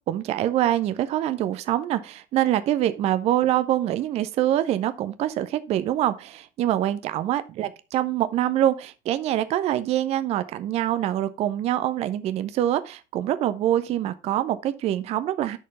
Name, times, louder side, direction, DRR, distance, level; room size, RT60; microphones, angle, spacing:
voice 1, 0.1-15.6, right 12 dB, 20° right, 0.4 m, -25 dB
7.8 x 6.3 x 4.1 m
figure-of-eight pair, 85°, 38 cm